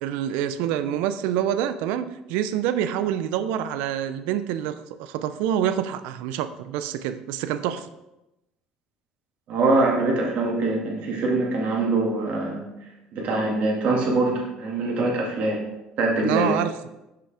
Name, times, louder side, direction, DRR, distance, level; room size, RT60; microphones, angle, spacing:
voice 1, 0.0-7.9 16.2-16.7, right 10 dB, 80° right, 11 dB, 0.4 m, -26 dB
voice 2, 9.5-15.6 16.0-16.5, right 2 dB, 65° right, -1 dB, 1.9 m, -23 dB
6.2 x 5.4 x 3.4 m, 0.95 s
supercardioid pair, 100°, 3 cm